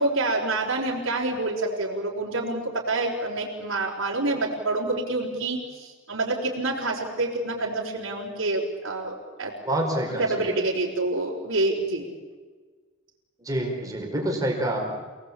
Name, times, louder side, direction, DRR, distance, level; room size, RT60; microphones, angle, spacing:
voice 1, 0.0-9.5 10.2-12.1, right 2 dB, 65° right, -5 dB, 4.7 m, -27 dB
voice 2, 9.6-10.5 13.4-14.9, right 1 dB, 15° right, 0 dB, 4.8 m, -27 dB
28.5 x 19.0 x 8.7 m, 1.5 s
head